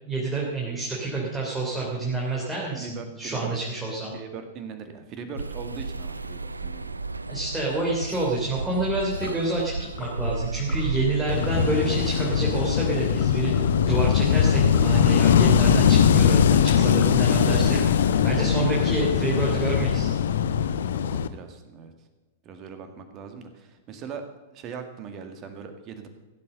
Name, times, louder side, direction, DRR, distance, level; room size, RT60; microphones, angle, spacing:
voice 1, 0.0-4.1 7.3-13.5 13.8-20.1, right 2 dB, 10° right, -4 dB, 3.2 m, -28 dB
voice 2, 2.7-3.6 4.1-6.9 21.0-21.9 22.4-24.2 24.5-26.1, right 6 dB, 35° right, 7 dB, 2.1 m, -40 dB
sound 1, 5.4-12.7, right 3 dB, 85° right, 0.5 m, -33 dB
sound 2, 9.1-9.5 9.9-10.2 10.6-10.9 11.3-11.7 12.0-12.4 13.1-16.0 16.7-19.5, left 3 dB, 35° left, 2.9 m, -43 dB
Wind / Waves surf, 11.3-21.3, left 8 dB, 65° left, 0.7 m, -21 dB
16.0 x 7.9 x 6.8 m, 1.2 s
figure-of-eight pair, 100°, 0 cm